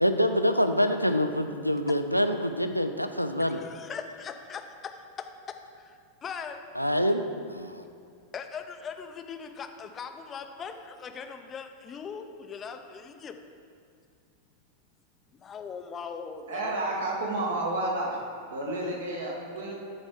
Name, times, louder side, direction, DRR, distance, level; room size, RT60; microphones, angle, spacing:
voice 1, 0.0-3.6 6.8-7.8, equal, 90° left, 7 dB, 0.4 m, -26 dB
voice 2, 3.5-5.3 5.7-6.6 8.3-13.4 15.3-16.7, left 6 dB, 25° left, 6 dB, 0.6 m, -40 dB
voice 3, 16.5-18.2 18.5-19.8, right 2 dB, 65° right, -3 dB, 1.7 m, -30 dB
9.9 x 4.3 x 5.0 m, 2.3 s
figure-of-eight pair, 90°, 0 cm